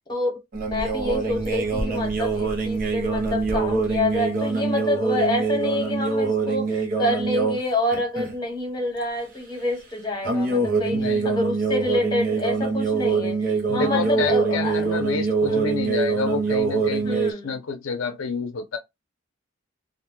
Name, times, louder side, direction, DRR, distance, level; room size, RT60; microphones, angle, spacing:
voice 1, 0.1-14.9 15.4-15.8 17.0-17.6, left 2 dB, 20° left, 1.0 m, -27 dB
sound 1, 0.5-7.6 7.9-8.4 10.2-17.3, right 4 dB, 45° right, 0.6 m, -24 dB
voice 2, 10.9-11.4 13.7-18.8, left 4 dB, 80° left, 0.5 m, -29 dB
2.5 x 2.2 x 3.0 m
head